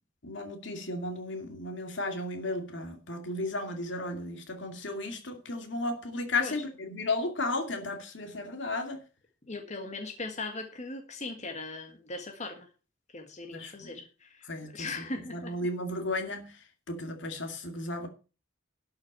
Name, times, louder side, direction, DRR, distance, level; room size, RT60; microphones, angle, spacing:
voice 1, 0.2-9.0 13.5-13.9 14.5-14.9 15.3-16.5 16.9-18.1, left 2 dB, 65° left, 2.5 m, -34 dB
voice 2, 9.5-12.7 13.1-15.5, left 3 dB, 40° left, 1.8 m, -39 dB
12.0 x 6.3 x 7.5 m
head